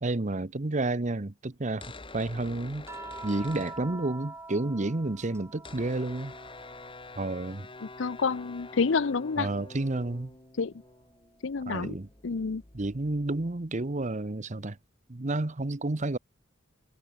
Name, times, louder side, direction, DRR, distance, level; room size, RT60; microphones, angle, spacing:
voice 1, 0.0-2.9 3.2-6.3 7.2-7.7 9.4-10.3 11.7-12.1 12.7-14.8 15.1-16.2, right 2 dB, 40° right, 0.9 m, -30 dB
sound 1, 1.8-4.4 4.7-4.8 4.9-14.4, left 2 dB, 25° left, 2.4 m, -48 dB
sound 2, 2.9-7.4 7.7-9.3 10.9-11.0, right 2 dB, 15° right, 4.2 m, -46 dB
voice 2, 8.0-9.5 10.6-10.7 11.4-11.9 12.2-12.6, left 4 dB, 70° left, 0.6 m, -28 dB
head